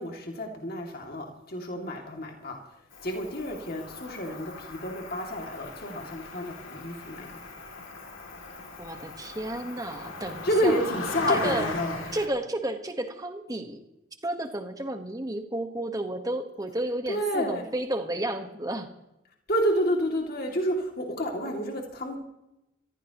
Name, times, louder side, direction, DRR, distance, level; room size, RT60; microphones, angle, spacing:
voice 1, 0.0-2.6 3.0-7.4 10.4-12.0 17.1-17.7 19.5-22.2, equal, 45° left, 1 dB, 2.4 m, -29 dB
Cricket, 2.9-12.3, left 3 dB, 75° left, 2.7 m, -39 dB
voice 2, 8.8-10.8 11.3-11.7 12.1-13.8 14.2-18.9, right 1 dB, 15° right, 6 dB, 1.3 m, -32 dB
24.5 x 15.0 x 3.0 m, 0.90 s
head